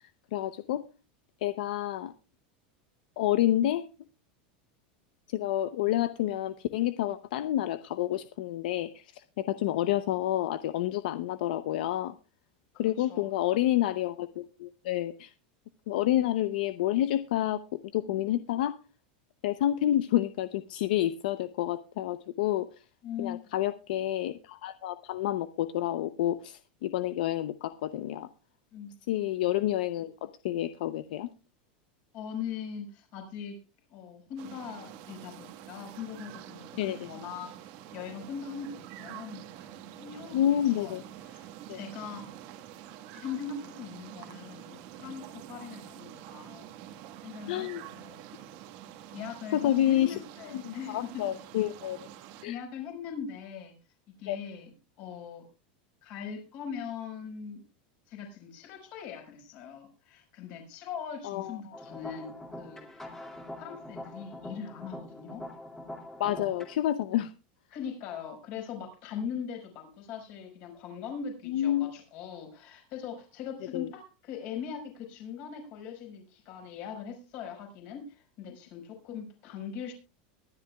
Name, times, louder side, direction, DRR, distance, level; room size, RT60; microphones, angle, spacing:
voice 1, 0.3-0.8 1.4-2.1 3.2-3.8 5.3-12.1 12.8-15.3 15.9-17.6 17.9-18.8 19.4-22.7 23.2-28.3 29.1-31.3 36.8-37.1 40.3-41.0 41.7-41.8 47.5-47.8 49.5-50.2 50.5-52.1 52.4-52.6 54.3-54.4 61.2-61.6 66.2-67.3 71.5-71.9 73.7-73.9, left 13 dB, 65° left, 12 dB, 0.7 m, -29 dB
voice 2, 12.8-13.3 23.0-23.4 28.7-28.9 32.1-33.6 33.9-40.4 40.8-41.0 41.2-42.3 43.1-46.7 47.2-48.2 49.1-51.3 52.4-53.8 54.2-54.7 55.0-55.5 56.0-57.6 58.1-63.1 63.6-65.4 67.7-79.9, left 7 dB, 40° left, 3 dB, 5.4 m, -41 dB
sound 1, 34.4-52.5, right 11 dB, 45° right, 1.5 m, -47 dB
sound 2, 61.7-66.7, left 1 dB, 5° left, 2.4 m, -44 dB
22.5 x 11.5 x 2.3 m, 0.30 s
supercardioid pair, 175°, 5 cm